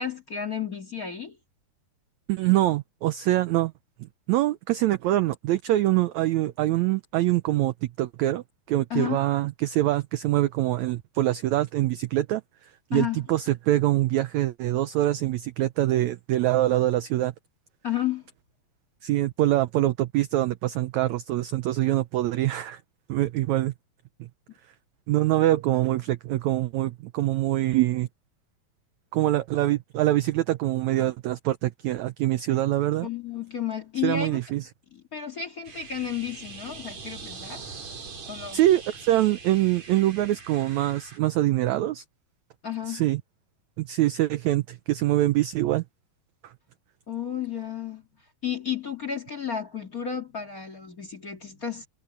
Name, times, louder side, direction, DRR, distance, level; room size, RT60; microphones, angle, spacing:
voice 1, 0.0-1.4 8.9-9.2 12.9-13.2 17.8-18.2 33.0-34.4 34.9-37.7 38.3-38.6 42.6-43.0 47.1-48.1 48.4-51.9, left 9 dB, 30° left, 2.0 m, -32 dB
voice 2, 2.3-3.7 4.3-12.4 12.9-17.3 19.0-22.8 23.1-23.7 24.2-24.3 25.1-28.1 29.1-33.1 34.0-34.7 38.5-42.0 42.9-43.2 43.8-45.8, right 15 dB, 80° right, 1.6 m, -24 dB
sound 1, 35.6-41.2, right 5 dB, 50° right, 4.9 m, -42 dB
omnidirectional pair, 4.0 m